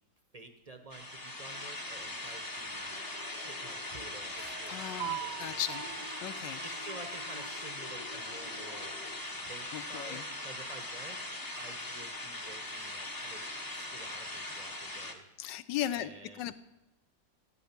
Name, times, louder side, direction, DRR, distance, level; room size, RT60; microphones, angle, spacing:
voice 1, 0.3-2.9 3.4-5.7 6.6-8.9 9.4-11.2 11.5-13.4 13.7-15.3 15.9-16.5, right 2 dB, 35° right, 7 dB, 0.7 m, -50 dB
sound 1, 0.9-15.1, left 1 dB, 20° left, 0.7 m, -40 dB
sound 2, 2.9-9.2, left 4 dB, 55° left, 1.9 m, -52 dB
sound 3, 3.9-11.6 12.0-12.1 12.5-13.2, right 14 dB, 75° right, 1.1 m, -47 dB
voice 2, 4.4-5.9 6.2-6.6 9.7-10.2 15.4-16.5, left 12 dB, 75° left, 14 dB, 1.3 m, -37 dB
14.0 x 9.1 x 5.8 m, 1.0 s
omnidirectional pair, 2.0 m